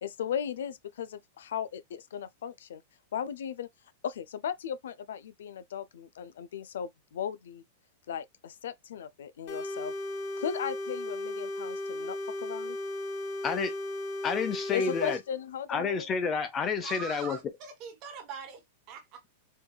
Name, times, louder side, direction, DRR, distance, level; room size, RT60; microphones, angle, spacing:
voice 1, 0.0-2.8 3.1-3.7 4.0-7.6 8.1-9.9 10.4-12.8 14.7-16.1, left 8 dB, 85° left, 0.4 m, -37 dB
sound 1, 9.5-15.2, left 1 dB, 45° left, 1.1 m, -36 dB
voice 2, 13.4-13.8 14.2-15.2 15.7-17.4, left 5 dB, 20° left, 0.5 m, -29 dB
voice 3, 16.8-18.6 18.9-19.2, right 7 dB, 35° right, 1.2 m, -42 dB
4.4 x 2.3 x 2.2 m
supercardioid pair, 165°, 0 cm